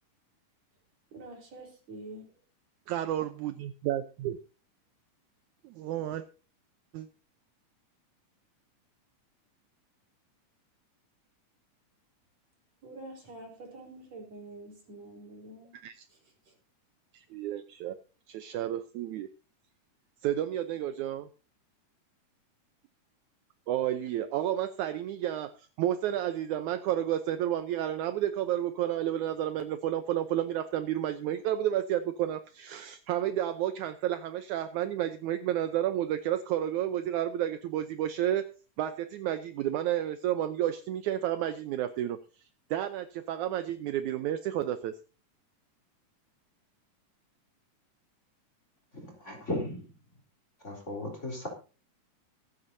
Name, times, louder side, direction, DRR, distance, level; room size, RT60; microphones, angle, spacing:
voice 1, 1.1-2.3 12.8-15.8, right 2 dB, 55° right, 2 dB, 5.3 m, -46 dB
voice 2, 2.9-4.4 5.6-6.3 6.9-7.1 15.7-16.1 17.1-18.0 18.3-19.3 20.2-21.3 23.7-38.5 38.8-42.2 42.7-44.9, right 11 dB, 75° right, 10 dB, 2.1 m, -31 dB
voice 3, 48.9-49.8 50.6-51.5, left 1 dB, 20° left, 1 dB, 4.0 m, -36 dB
24.5 x 9.7 x 2.7 m, 0.34 s
omnidirectional pair, 3.7 m